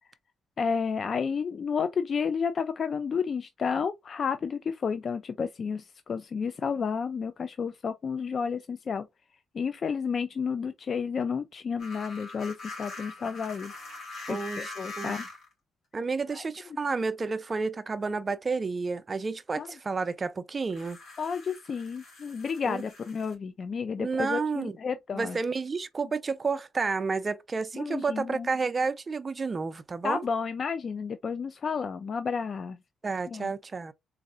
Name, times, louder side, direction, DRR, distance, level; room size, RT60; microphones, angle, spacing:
voice 1, 0.6-9.1 9.5-13.7 14.3-15.3 16.3-16.4 19.6-19.7 21.2-25.4 27.7-28.5 30.0-32.8 33.3-33.5, left 6 dB, 45° left, 0.3 m, -31 dB
sound 1, 11.8-15.5 16.5-16.6 20.7-23.3, left 2 dB, 70° left, 2.0 m, -42 dB
voice 2, 14.3-15.2 15.9-21.0 22.6-22.8 24.0-24.8 25.1-30.3 33.0-33.9, right 4 dB, 30° right, 0.4 m, -31 dB
4.0 x 2.6 x 2.4 m
cardioid pair, 90°, 0 cm